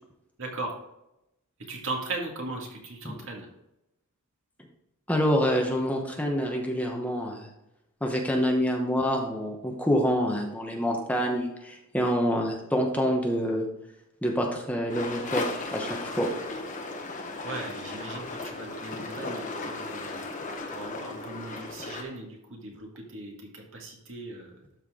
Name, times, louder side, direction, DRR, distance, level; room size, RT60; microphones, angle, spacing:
voice 1, 0.4-0.7 1.7-3.5 17.4-20.2 20.7-24.5, right 2 dB, 65° right, 0 dB, 2.0 m, -38 dB
voice 2, 5.1-7.5 8.0-13.7 14.2-15.4 15.7-16.3, equal, 5° left, 1 dB, 1.0 m, -27 dB
sound 1, 14.9-22.0, left 3 dB, 35° left, 1.2 m, -36 dB
12.5 x 4.4 x 3.7 m, 0.87 s
head